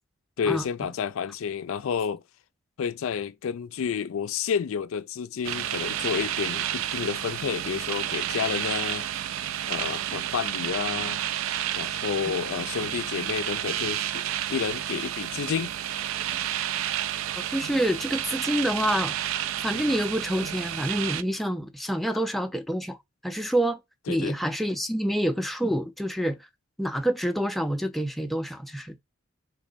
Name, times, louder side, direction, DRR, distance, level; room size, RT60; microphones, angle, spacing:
voice 1, 0.4-2.2 2.8-9.1 9.7-11.2 11.8-15.7 19.7-19.8 22.1-22.2 24.1-24.4, left 7 dB, 85° left, 0.4 m, -30 dB
sound 1, 5.4-21.2, right 11 dB, 80° right, 0.3 m, -31 dB
voice 2, 17.4-19.1 19.6-23.0 23.2-23.8 24.1-26.4 26.8-28.9, equal, ahead, 0.4 m, -27 dB
3.6 x 3.2 x 2.4 m
head